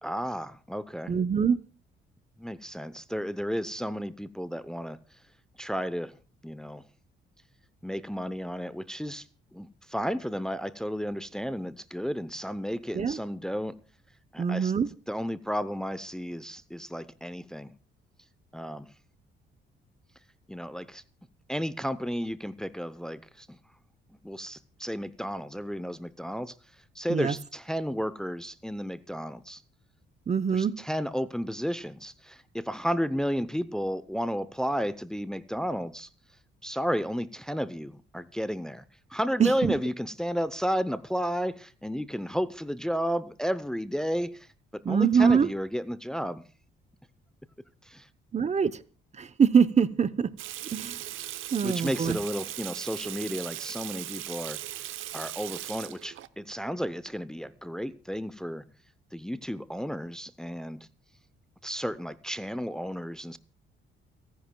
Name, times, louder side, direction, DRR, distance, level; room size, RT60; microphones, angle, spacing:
voice 1, 0.0-1.1 2.4-5.0 5.6-6.1 6.4-6.8 7.8-9.3 9.5-13.8 14.3-14.7 15.1-17.7 18.5-18.9 20.5-21.0 21.5-23.6 24.2-26.5 26.9-29.6 30.5-36.1 36.6-38.8 39.1-46.4 47.8-48.1 51.6-54.6 55.1-58.6 59.1-60.9 61.6-63.4, equal, 5° left, 0.7 m, -32 dB
voice 2, 1.1-1.6 12.9-13.2 14.4-14.9 27.1-27.3 30.3-30.7 39.4-39.7 44.8-45.5 48.3-48.7 49.2-50.3 50.7-51.0 51.5-52.2, right 6 dB, 35° right, 0.8 m, -24 dB
Water tap faucet / Sink (filling or washing), 50.4-56.3, right 14 dB, 85° right, 0.8 m, -38 dB
29.5 x 10.5 x 2.3 m
cardioid pair, 90°, 20 cm